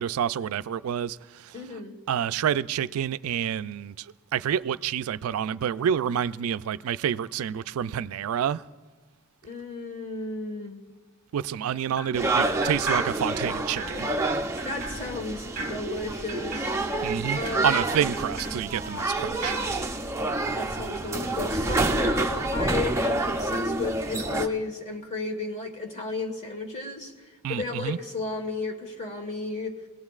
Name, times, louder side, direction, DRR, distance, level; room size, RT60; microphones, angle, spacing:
voice 1, 0.0-1.5 2.1-4.1 4.3-8.6 11.3-14.1 17.0-19.6 27.4-28.0, right 9 dB, 75° right, 0.3 m, -28 dB
voice 2, 1.5-2.0 9.4-10.8 14.6-16.7 17.3-17.7 19.3-19.5 20.1-29.8, left 3 dB, 30° left, 1.4 m, -34 dB
sound 1, 12.0-12.3 12.6-13.5 13.8-19.1 19.4-19.8, right 2 dB, 40° right, 0.9 m, -38 dB
sound 2, 12.1-24.5, right 2 dB, 15° right, 0.5 m, -28 dB
24.0 x 17.5 x 2.4 m
head